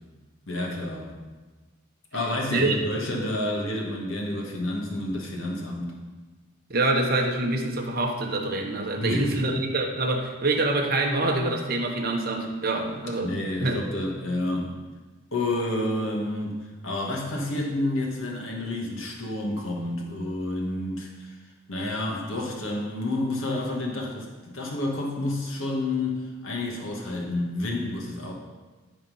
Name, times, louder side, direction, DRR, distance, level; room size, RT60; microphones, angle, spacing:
voice 1, 0.5-1.1 2.1-6.0 9.0-9.4 13.2-14.8 15.3-16.6 16.8-21.4 21.7-28.3, left 1 dB, 75° left, -1 dB, 1.8 m, -29 dB
voice 2, 6.7-13.3 13.6-13.8, right 2 dB, 45° right, 2 dB, 1.1 m, -25 dB
13.0 x 4.3 x 5.5 m, 1.3 s
head